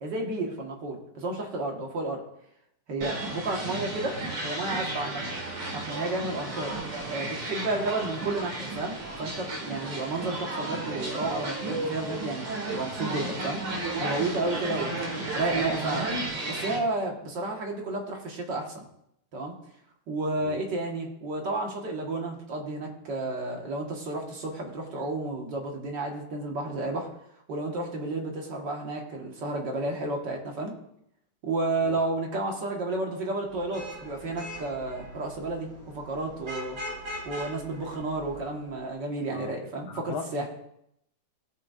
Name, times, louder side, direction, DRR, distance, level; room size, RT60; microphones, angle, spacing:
voice 1, 0.0-2.2 2.9-4.2 4.4-5.2 5.7-6.8 7.1-13.6 14.0-14.9 15.3-16.2 16.5-18.8 19.3-19.6 20.1-27.1 27.5-30.7 31.4-36.8 37.3-40.5, right 2 dB, 55° right, 1 dB, 2.0 m, -32 dB
sound 1, 3.0-16.8, right 2 dB, 80° right, 2.7 m, -33 dB
Vehicle horn car horn honking / Traffic noise roadway noise, 33.5-38.8, equal, 40° right, 3.3 m, -41 dB
voice 2, 39.9-40.5, left 6 dB, 75° left, 6 dB, 1.6 m, -39 dB
18.5 x 6.4 x 2.5 m, 0.76 s
omnidirectional pair, 2.3 m